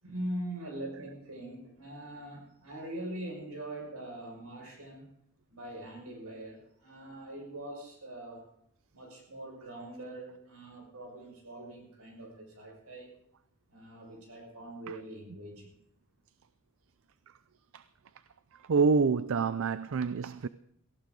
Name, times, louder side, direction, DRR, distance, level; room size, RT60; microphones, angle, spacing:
voice 1, 0.0-5.1 5.5-8.5 8.9-13.1 13.7-15.7, right 1 dB, 80° right, 6.1 m, -42 dB
voice 2, 18.6-20.5, right 5 dB, 60° right, 0.5 m, -27 dB
18.0 x 15.5 x 3.9 m
head